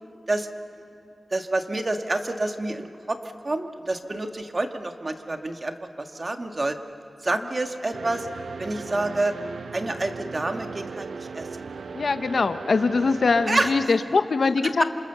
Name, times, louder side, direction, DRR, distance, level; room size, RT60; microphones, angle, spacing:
voice 1, 1.3-3.2 3.4-6.8 7.2-8.3 8.6-9.3 9.7-11.5 13.5-13.7 14.6-14.7, right 2 dB, 35° right, 6 dB, 1.6 m, -28 dB
sound 1, 7.9-13.9, right 5 dB, 85° right, 0.6 m, -37 dB
voice 2, 11.9-14.8, left 4 dB, 70° left, 9 dB, 0.9 m, -22 dB
28.0 x 27.5 x 6.9 m, 3.0 s
wide cardioid pair, 100°, 0 cm